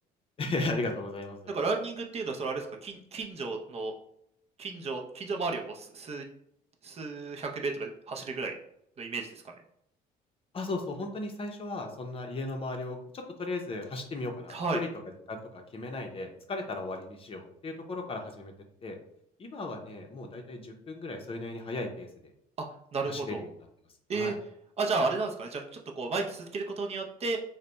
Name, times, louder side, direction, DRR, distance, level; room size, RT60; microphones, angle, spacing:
voice 1, 0.4-1.5 10.5-14.9 15.3-18.5 18.8-19.0 19.4-22.1 23.1-23.5 24.1-24.4, left 2 dB, 35° left, 3 dB, 0.6 m, -36 dB
voice 2, 1.5-3.9 4.6-6.2 6.8-8.5 9.0-9.5 14.5-14.8 22.6-22.7 22.9-23.4 24.1-24.3 24.8-27.4, right 3 dB, 35° right, 2 dB, 0.6 m, -33 dB
3.3 x 2.2 x 3.9 m, 0.76 s
cardioid pair, 110°, 17 cm